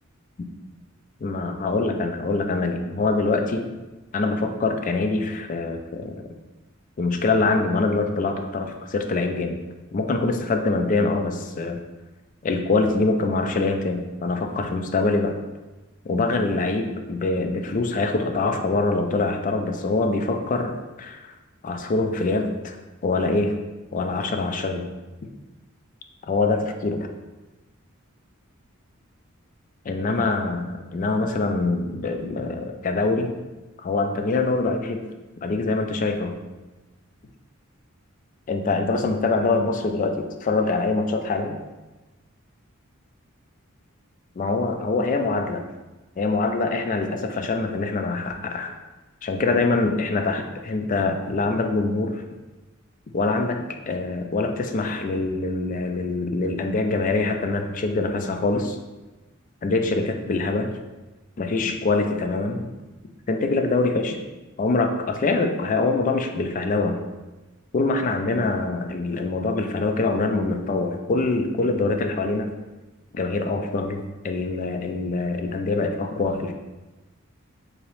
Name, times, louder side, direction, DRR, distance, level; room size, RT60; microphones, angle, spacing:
voice 1, 1.2-3.7 4.1-6.2 7.0-9.6 9.9-11.8 12.4-15.3 16.1-21.3 21.6-22.8 23.0-23.5 23.9-24.9 26.3-27.1 29.9-33.3 33.8-35.0 35.4-36.4 38.5-41.6 44.4-45.6 46.2-48.8 49.2-52.2 53.1-58.8 59.6-60.7 61.4-62.7 63.3-64.2 64.6-67.0 67.7-72.5 73.1-76.5, left 3 dB, 40° left, 6 dB, 0.3 m, -24 dB
4.1 x 2.8 x 3.0 m, 1.1 s
head